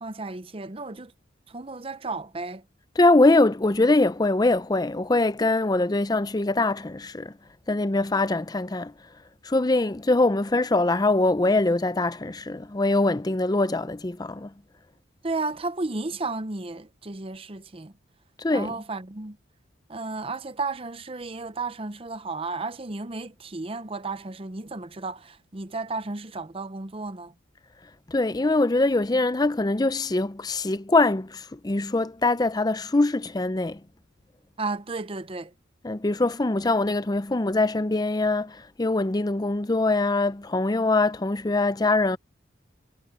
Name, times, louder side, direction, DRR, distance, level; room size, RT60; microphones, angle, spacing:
voice 1, 0.0-1.1 1.5-2.6 15.2-17.9 18.5-19.4 19.9-27.3 34.6-35.5, right 3 dB, 30° right, 0.8 m, -33 dB
voice 2, 3.0-7.3 7.7-8.9 9.4-14.5 18.4-18.8 28.1-33.8 35.8-42.2, left 2 dB, 20° left, 0.5 m, -23 dB
head